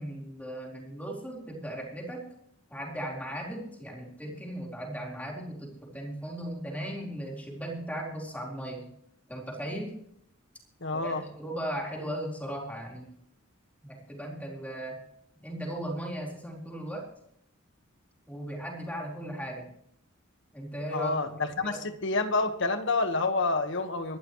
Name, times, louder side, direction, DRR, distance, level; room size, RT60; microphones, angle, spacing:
voice 1, 0.0-2.3 2.7-8.9 9.3-10.0 10.9-13.1 13.8-15.0 15.4-17.1 18.3-19.7 20.5-21.1 21.6-21.8, right 1 dB, 5° left, -1 dB, 4.1 m, -37 dB
voice 2, 10.8-11.2 20.9-24.2, left 3 dB, 60° left, 9 dB, 1.5 m, -28 dB
24.0 x 12.5 x 3.2 m, 0.72 s
head